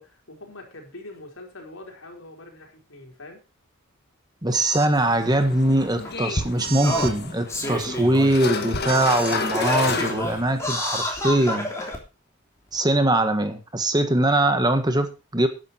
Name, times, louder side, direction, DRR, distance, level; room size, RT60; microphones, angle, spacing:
voice 1, 0.0-3.4 14.4-14.8, left 2 dB, 75° left, 2 dB, 4.8 m, -44 dB
voice 2, 4.4-11.7 12.7-15.5, right 1 dB, 20° right, 8 dB, 1.5 m, -22 dB
sound 1, 4.5-4.9 6.6-7.1 8.8-9.4, right 6 dB, 45° right, 2.4 m, -33 dB
Singing, 4.9-5.0 6.0-6.1 6.7-8.4 8.9-9.0 9.4-12.0 12.7-12.8, left 1 dB, 15° left, 3.3 m, -29 dB
sound 2, 5.0-10.8, left 3 dB, 50° left, 1.9 m, -30 dB
12.0 x 10.5 x 4.4 m, 0.29 s
head